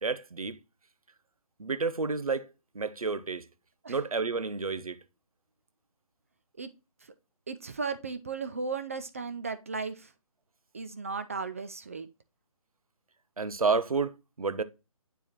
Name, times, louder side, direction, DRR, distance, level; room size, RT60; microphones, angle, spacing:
voice 1, 0.0-0.6 1.6-2.5 2.7-3.4 3.9-5.0 13.4-14.6, right 4 dB, 75° right, 0.8 m, -30 dB
voice 2, 7.5-10.1 10.7-12.1, right 4 dB, 25° right, 0.4 m, -35 dB
9.1 x 4.6 x 2.9 m
figure-of-eight pair, 150°, 18 cm